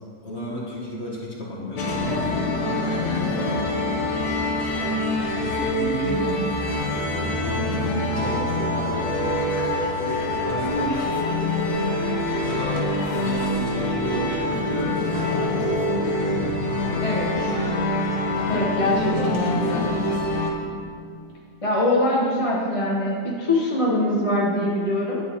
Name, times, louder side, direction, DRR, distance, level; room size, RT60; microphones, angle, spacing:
voice 1, 0.2-4.0 5.3-6.3 7.4-9.2 9.7-11.4 12.4-16.1 18.5-20.2, left 1 dB, 45° left, -4 dB, 1.4 m, -32 dB
sound 1, 1.8-20.5, left 1 dB, 85° left, 1.5 m, -25 dB
voice 2, 6.0-6.6 17.0-17.5 18.5-19.8 21.6-25.2, left 1 dB, 30° left, -4 dB, 0.8 m, -23 dB
11.0 x 7.8 x 2.8 m, 2.3 s
omnidirectional pair, 1.6 m